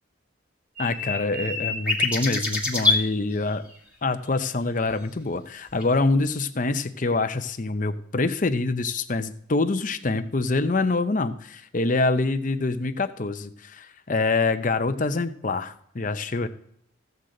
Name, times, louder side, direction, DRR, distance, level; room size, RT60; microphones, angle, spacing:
voice 1, 0.8-3.6 4.0-16.5, left 3 dB, 40° left, 9 dB, 0.7 m, -25 dB
sound 1, 0.8-3.0 5.8-5.9, left 3 dB, 5° right, 1.8 m, -25 dB
14.5 x 8.1 x 3.8 m, 0.68 s
head